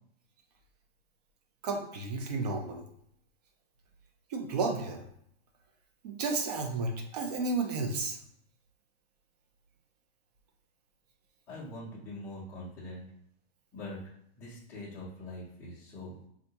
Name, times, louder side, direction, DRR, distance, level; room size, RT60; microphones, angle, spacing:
voice 1, 1.6-2.9 4.3-5.0 6.0-8.2, right 3 dB, 40° right, 4 dB, 0.5 m, -32 dB
voice 2, 11.5-13.1 13.7-14.0 14.4-16.2, left 1 dB, 10° left, -9 dB, 0.5 m, -43 dB
3.6 x 2.3 x 2.8 m, 0.71 s
hypercardioid pair, 165°, 30 cm